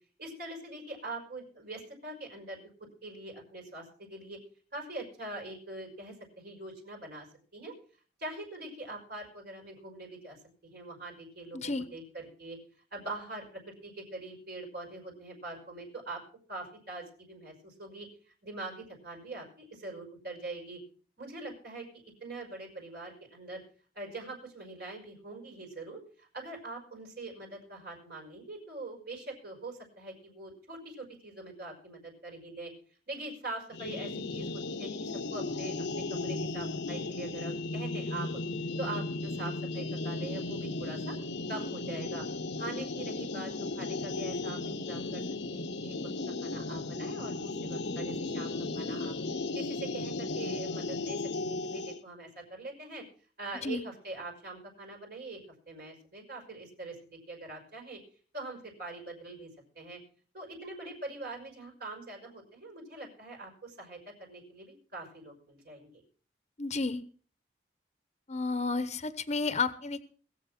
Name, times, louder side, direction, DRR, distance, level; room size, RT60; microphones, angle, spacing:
voice 1, 0.2-2.7 3.0-4.4 4.7-7.3 7.5-7.7 8.2-10.4 10.6-12.6 12.9-16.2 16.5-18.1 18.4-20.8 21.2-21.9 22.2-23.6 23.9-32.7 33.1-38.3 38.8-41.1 41.5-42.3 42.6-45.9 46.3-49.2 49.5-53.0 53.4-55.4 55.7-57.0 57.3-58.0 58.3-59.5 59.8-60.0 60.3-66.0, right 2 dB, 60° right, 1 dB, 5.6 m, -43 dB
voice 2, 11.5-11.9 53.6-53.8 66.6-67.0 68.3-70.0, left 3 dB, 40° left, 12 dB, 1.0 m, -31 dB
sound 1, 33.7-52.0, left 2 dB, 75° left, 1.0 m, -35 dB
21.5 x 7.5 x 6.0 m, 0.43 s
head